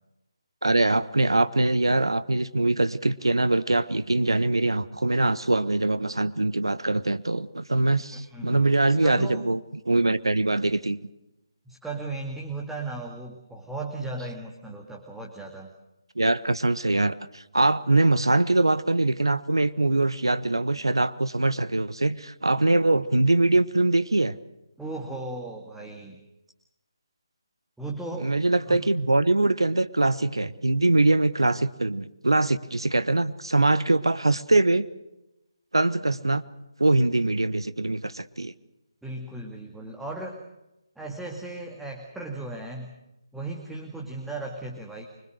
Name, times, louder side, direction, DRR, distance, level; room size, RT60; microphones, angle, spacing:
voice 1, 0.6-9.6 9.9-11.1 16.2-24.3 28.2-34.9 35.7-36.4 36.8-38.5, right 2 dB, 70° right, 14 dB, 1.2 m, -23 dB
voice 2, 8.1-8.6 9.0-9.5 11.7-15.7 24.8-26.2 27.8-28.4 28.7-28.9 39.0-40.4 41.0-42.9 43.3-45.1, right 2 dB, 5° right, -1 dB, 2.1 m, -36 dB
25.5 x 24.0 x 6.5 m, 0.92 s
figure-of-eight pair, 150°, 3 cm